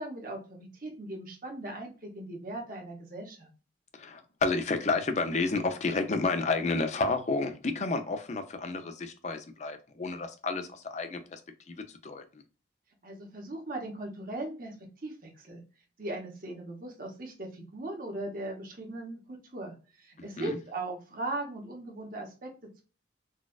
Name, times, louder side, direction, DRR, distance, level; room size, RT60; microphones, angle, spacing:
voice 1, 0.0-3.5 13.0-14.7 15.0-15.6 16.0-22.5, right 2 dB, 45° right, 0.9 m, -39 dB
voice 2, 4.0-11.4 11.7-11.8 12.0-12.2 20.4-20.6, left 3 dB, 35° left, 0.5 m, -30 dB
4.0 x 2.3 x 2.3 m
head